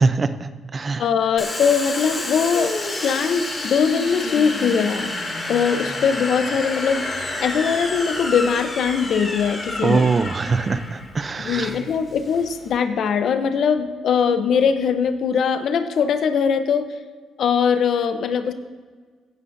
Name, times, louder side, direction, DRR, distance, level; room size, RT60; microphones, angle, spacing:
voice 1, 0.0-1.0 9.8-11.7, right 4 dB, 35° right, 11 dB, 0.6 m, -22 dB
voice 2, 1.0-5.1 5.5-7.1 7.4-10.1 11.4-16.9 17.4-18.5, left 6 dB, 65° left, 10 dB, 0.8 m, -21 dB
Domestic sounds home sounds, 1.4-12.8, left 2 dB, 25° left, 2.5 m, -29 dB
16.5 x 9.5 x 2.7 m, 1.5 s
cardioid pair, 90°, 0 cm